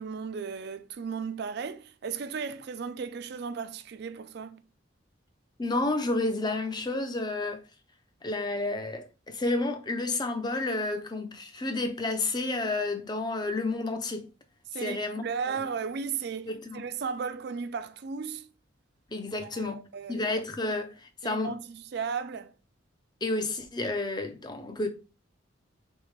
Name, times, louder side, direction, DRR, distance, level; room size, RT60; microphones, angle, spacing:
voice 1, 0.0-4.6 14.7-18.5 19.4-20.3 21.2-22.5, right 5 dB, 55° right, 0.4 m, -35 dB
voice 2, 5.6-7.6 8.2-14.3 14.8-15.6 16.5-16.8 19.1-19.8 20.1-21.5 23.2-24.9, left 2 dB, 20° left, 0.5 m, -31 dB
3.6 x 3.5 x 3.1 m
head